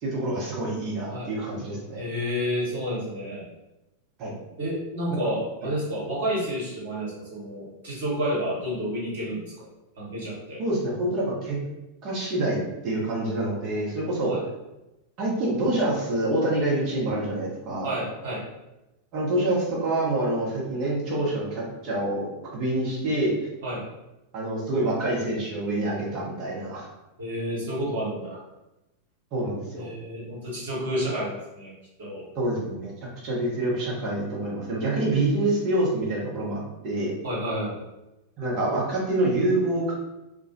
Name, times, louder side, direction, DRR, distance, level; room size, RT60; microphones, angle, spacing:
voice 1, 0.0-2.0 4.2-4.3 5.1-5.2 10.6-11.6 12.0-14.4 15.2-17.9 19.1-23.5 24.3-26.9 29.3-29.8 32.3-32.9 33.2-37.1 38.4-39.9, right 1 dB, 40° right, -5 dB, 0.9 m, -26 dB
voice 2, 1.9-3.4 4.6-9.7 10.0-10.6 14.3-14.4 17.8-18.4 23.6-23.8 27.2-28.4 29.7-31.7 32.0-32.2 37.2-37.7, equal, 60° right, -6 dB, 1.1 m, -30 dB
2.3 x 2.2 x 2.7 m, 0.97 s
figure-of-eight pair, 90°, 0 cm